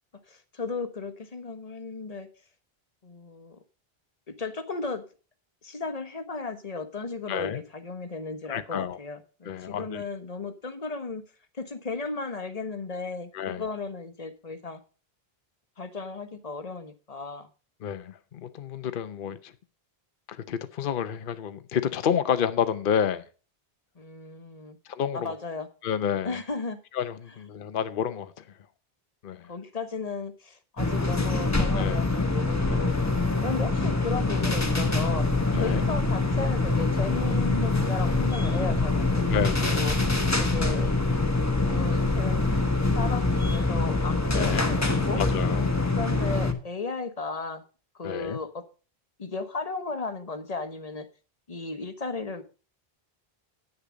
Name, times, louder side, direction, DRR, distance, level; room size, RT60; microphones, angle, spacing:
voice 1, 0.3-2.3 3.0-3.6 4.3-5.0 5.6-11.2 11.5-14.8 15.8-17.5 24.0-24.8 25.1-25.7 26.2-26.8 29.5-33.0 33.4-35.2 35.6-39.3 39.6-39.9 40.4-41.0 41.6-42.5 42.9-45.2 45.9-47.6 47.9-48.6 49.2-51.1 51.5-52.4, left 4 dB, 40° left, 1.2 m, -35 dB
voice 2, 7.3-7.6 8.5-9.0 9.4-10.0 13.3-13.6 17.8-19.5 20.3-23.2 24.9-25.3 25.8-26.4 26.9-28.5 29.2-29.5 31.8-32.0 32.7-32.9 35.5-35.9 39.3-39.9 44.3-44.6 45.2-45.8 48.0-48.4, left 8 dB, 60° left, 0.9 m, -29 dB
sound 1, 30.8-46.5, left 3 dB, 15° left, 1.1 m, -25 dB
9.5 x 6.8 x 6.2 m
omnidirectional pair, 1.0 m